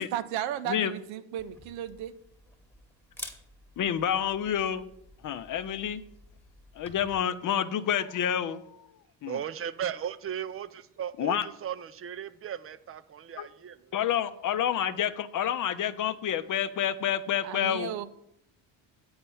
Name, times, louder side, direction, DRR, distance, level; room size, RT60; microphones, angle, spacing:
voice 1, 0.0-2.1 17.4-18.1, right 11 dB, 80° right, 12 dB, 0.7 m, -34 dB
Camera, 1.4-7.2, left 1 dB, 5° left, 1.2 m, -50 dB
voice 2, 3.8-4.9 5.2-6.0 6.8-8.6 9.2-9.4 11.2-11.5 13.4-13.5 13.9-17.9, left 9 dB, 45° left, 12 dB, 0.6 m, -28 dB
voice 3, 9.2-10.7 11.0-13.9, right 9 dB, 30° right, 13 dB, 0.5 m, -36 dB
8.7 x 4.3 x 7.0 m, 0.76 s
cardioid pair, 105°, 45 cm